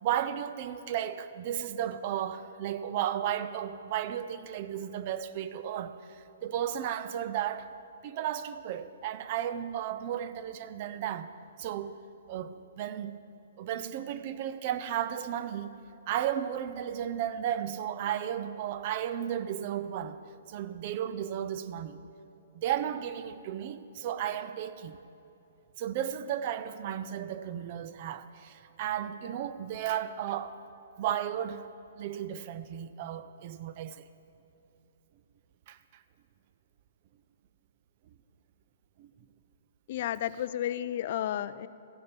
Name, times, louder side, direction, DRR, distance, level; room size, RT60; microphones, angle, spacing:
voice 1, 0.0-7.7 8.0-11.3 11.6-12.0 12.3-13.2 13.6-15.7 16.1-20.2 20.5-22.0 22.5-25.0 25.8-30.6 31.0-31.7 32.0-34.1 35.7-35.8 39.0-39.1 40.0-40.1, right 10 dB, 45° right, 0.5 m, -34 dB
voice 2, 39.9-41.7, left 11 dB, 50° left, 0.3 m, -32 dB
14.5 x 8.6 x 5.2 m
hypercardioid pair, 145°, 0 cm